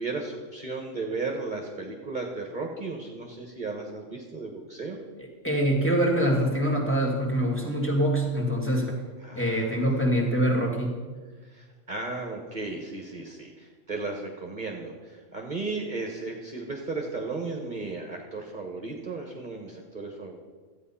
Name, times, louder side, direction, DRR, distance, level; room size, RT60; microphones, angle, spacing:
voice 1, 0.0-5.0 9.2-9.7 11.4-20.4, right 3 dB, 40° right, 2 dB, 1.2 m, -35 dB
voice 2, 5.2-9.0 9.4-11.0, equal, 10° left, -2 dB, 2.0 m, -25 dB
13.0 x 8.6 x 5.6 m, 1.4 s
omnidirectional pair, 1.3 m